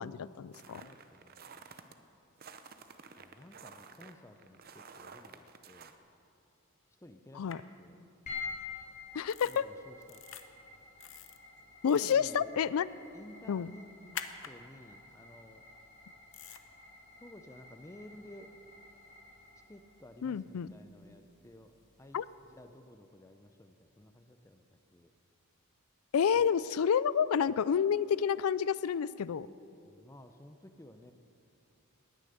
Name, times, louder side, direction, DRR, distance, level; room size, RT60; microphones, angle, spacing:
voice 1, 0.0-0.9 7.4-7.6 9.1-9.6 11.8-12.9 13.5-13.7 20.2-20.7 22.1-22.2 26.1-29.5, left 7 dB, 85° left, 19 dB, 0.4 m, -29 dB
sound 1, 0.5-1.9 2.4-6.0, right 5 dB, 45° right, 0.7 m, -52 dB
voice 2, 0.7-1.7 3.2-5.9 7.0-8.0 9.4-10.5 11.9-12.5 13.1-13.9 14.4-15.6 16.4-16.5 17.2-18.5 19.7-21.7 22.0-22.2 22.4-25.1 26.3-26.4 29.9-31.1, left 1 dB, 15° left, 8 dB, 0.5 m, -54 dB
sound 2, 7.5-7.6 9.3-9.6 10.0-10.4 11.0-11.4 11.9-12.2 14.1-14.5 16.3-16.6, left 8 dB, 60° left, 0.8 m, -44 dB
sound 3, 8.3-22.7, left 4 dB, 40° left, 3.6 m, -50 dB
18.0 x 10.0 x 6.7 m, 2.6 s
head